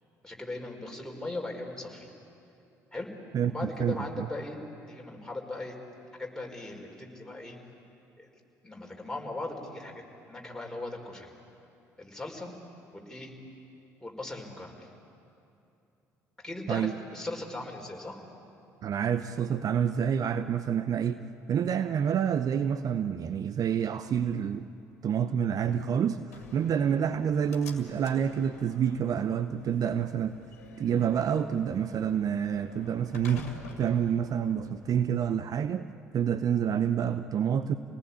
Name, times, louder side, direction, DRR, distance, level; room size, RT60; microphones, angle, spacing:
voice 1, 0.2-2.1 2.9-3.1 3.5-4.6 4.9-5.7 6.2-7.6 8.2-8.3 8.6-10.0 10.3-11.3 12.0-12.5 12.9-13.3 14.0-14.9 16.4-18.2, left 2 dB, 5° left, 0 dB, 4.9 m, -38 dB
voice 2, 3.3-4.3 16.7-16.9 18.8-21.2 21.5-24.7 25.0-30.4 30.8-35.8 36.1-37.8, right 8 dB, 50° right, 11 dB, 0.7 m, -28 dB
Slam, 26.3-35.3, left 3 dB, 85° left, 2.0 m, -49 dB
27.5 x 19.0 x 8.7 m, 2.7 s
hypercardioid pair, 50°, 8 cm